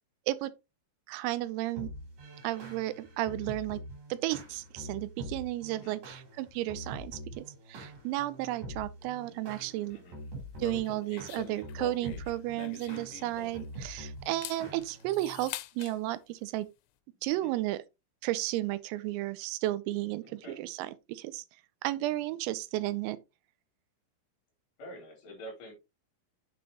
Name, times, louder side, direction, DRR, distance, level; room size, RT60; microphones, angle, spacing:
voice 1, 1.1-1.9 2.4-3.8 4.1-10.0 10.6-16.7 17.2-17.8 18.2-21.5 21.8-23.2, right 16 dB, 90° right, 3.4 m, -33 dB
sound 1, 1.8-15.5, equal, 40° right, 4.8 m, -45 dB
voice 2, 5.6-6.0 9.9-10.2 17.2-17.5 20.2-20.7 24.8-25.7, equal, 45° left, 5.0 m, -47 dB
sound 2, 10.6-13.8 14.3-16.0, left 15 dB, 85° left, 3.3 m, -44 dB
8.5 x 8.0 x 2.9 m
omnidirectional pair, 5.9 m